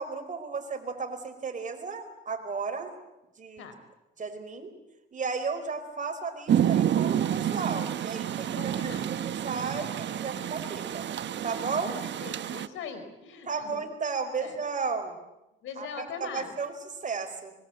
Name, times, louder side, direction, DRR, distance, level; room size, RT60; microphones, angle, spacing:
voice 1, 0.0-2.9 3.4-3.7 4.2-4.7 5.1-11.1 11.4-12.0 13.5-15.2 15.8-16.7 17.0-17.5, right 4 dB, 40° right, 7 dB, 4.7 m, -34 dB
Rain, 6.5-12.7, right 10 dB, 65° right, 1.2 m, -29 dB
voice 2, 8.5-9.1 11.9-13.8 14.4-14.6 15.6-16.6, left 6 dB, 85° left, 9 dB, 4.5 m, -41 dB
25.5 x 22.0 x 8.0 m, 0.93 s
cardioid pair, 90°, 20 cm